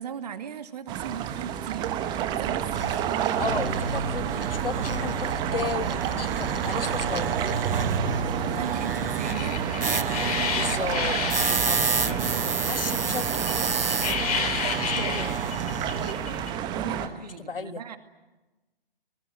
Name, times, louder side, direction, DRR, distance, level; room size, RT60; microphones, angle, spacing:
voice 1, 0.0-3.2 8.4-10.4 12.0-12.8 16.7-18.0, right 7 dB, 45° right, 8 dB, 2.4 m, -38 dB
sound 1, 0.9-17.1, right 10 dB, 15° right, 1.2 m, -29 dB
sound 2, 2.7-16.1, right 4 dB, 70° right, 1.5 m, -31 dB
voice 2, 3.4-7.4 10.5-11.2 11.5-12.2 12.6-13.5 14.8-15.4 17.2-17.8, left 5 dB, 70° left, 12 dB, 1.6 m, -34 dB
sound 3, 9.3-16.5, left 6 dB, 40° left, 3.7 m, -32 dB
26.0 x 21.0 x 9.4 m, 1.1 s
figure-of-eight pair, 130°, 29 cm